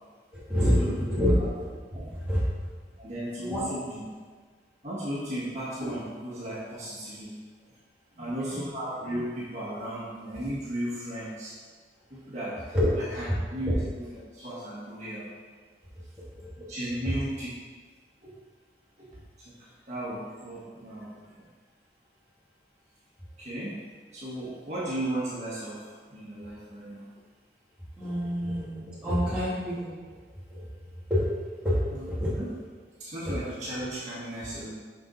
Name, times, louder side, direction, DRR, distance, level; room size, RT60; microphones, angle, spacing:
voice 1, 0.3-1.3 1.6-1.7 2.1-2.4 3.4-3.6 8.2-8.7 12.7-13.0 13.3-13.4 13.7-13.8 16.4-16.7 28.0-30.2 30.5-30.7 31.1-31.3 31.6-31.8 32.1-32.3, equal, 5° right, -11 dB, 2.5 m, -27 dB
voice 2, 3.0-4.0 4.8-7.4 8.2-11.5 12.1-12.7 13.1-13.8 14.3-15.3 16.6-17.6 18.2-18.3 19.0-19.2 19.9-21.1 21.4-21.5 23.4-23.8 24.1-27.0 28.0-28.1 31.9-32.1 32.3-32.5 33.0-34.7, right 1 dB, 40° right, -8 dB, 1.9 m, -35 dB
7.5 x 6.2 x 4.1 m, 1.5 s
head